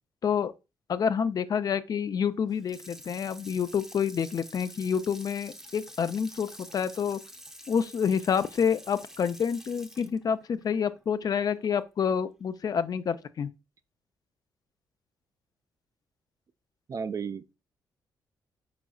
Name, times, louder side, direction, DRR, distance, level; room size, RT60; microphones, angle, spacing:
voice 1, 0.2-0.5 0.9-7.2 7.7-13.5, left 7 dB, 50° left, 0.4 m, -28 dB
Water tap faucet / Sink (filling or washing), 2.5-11.7 12.1-12.2, equal, 5° right, 0.6 m, -48 dB
voice 2, 16.9-17.6, right 6 dB, 45° right, 0.3 m, -34 dB
5.0 x 4.0 x 2.3 m
supercardioid pair, 65°, 8 cm